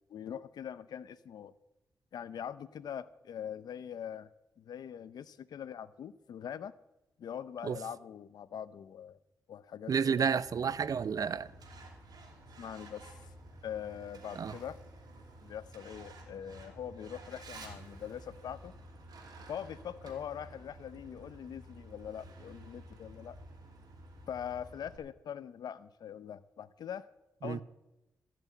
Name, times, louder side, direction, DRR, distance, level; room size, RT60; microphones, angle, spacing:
voice 1, 0.0-1.5 2.1-4.3 4.6-6.7 7.2-9.2 9.5-10.3 12.6-13.1 13.6-14.8 15.4-18.7 19.5-23.4 24.3-27.1 27.4-27.6, left 9 dB, 85° left, 0.6 m, -42 dB
voice 2, 9.9-11.5 14.4-14.5 27.4-27.6, right 6 dB, 65° right, 0.6 m, -31 dB
Truck, 10.4-25.0, right 1 dB, 80° right, 3.0 m, -52 dB
14.5 x 6.1 x 9.0 m
cardioid pair, 65°, 7 cm